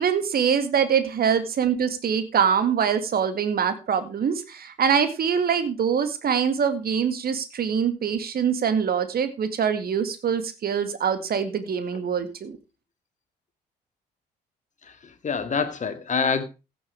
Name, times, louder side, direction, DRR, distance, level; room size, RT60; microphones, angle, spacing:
voice 1, 0.0-12.6, right 7 dB, 45° right, 11 dB, 2.0 m, -24 dB
voice 2, 14.8-16.4, left 5 dB, 35° left, 9 dB, 2.1 m, -26 dB
15.5 x 7.2 x 4.6 m, 0.29 s
figure-of-eight pair, 45°, 21 cm